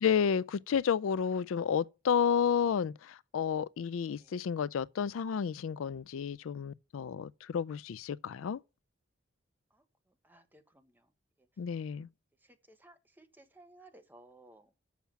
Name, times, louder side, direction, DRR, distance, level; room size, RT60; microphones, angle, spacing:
voice 1, 0.0-8.6 11.6-12.1, left 7 dB, 90° left, 0.4 m, -31 dB
voice 2, 9.7-11.1 11.4-11.6 12.4-14.7, right 2 dB, 10° right, 1.2 m, -60 dB
7.2 x 5.8 x 7.2 m
head